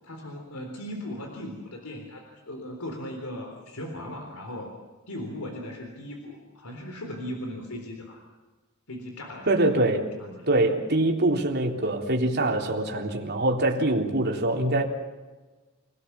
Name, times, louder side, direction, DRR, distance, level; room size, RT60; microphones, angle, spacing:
voice 1, 0.0-4.8 5.1-8.2 8.9-10.5, left 1 dB, 90° left, 2 dB, 3.8 m, -38 dB
voice 2, 9.5-10.1 10.5-14.8, right 2 dB, 50° right, 0 dB, 3.7 m, -24 dB
28.0 x 18.0 x 7.1 m, 1.3 s
head